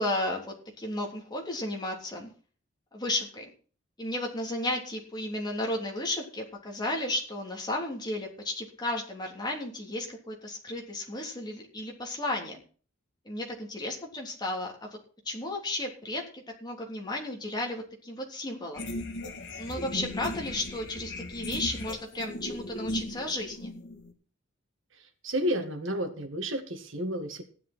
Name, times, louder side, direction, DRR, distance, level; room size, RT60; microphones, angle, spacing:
voice 1, 0.0-2.3 2.9-3.5 4.0-12.6 13.2-14.9 15.2-18.9 19.6-23.7, left 1 dB, 20° left, 0 dB, 3.3 m, -33 dB
sound 1, 18.7-24.1, left 1 dB, 55° left, 2.9 m, -37 dB
voice 2, 24.9-27.4, equal, 60° right, 7 dB, 2.0 m, -31 dB
15.5 x 11.0 x 4.4 m, 0.40 s
head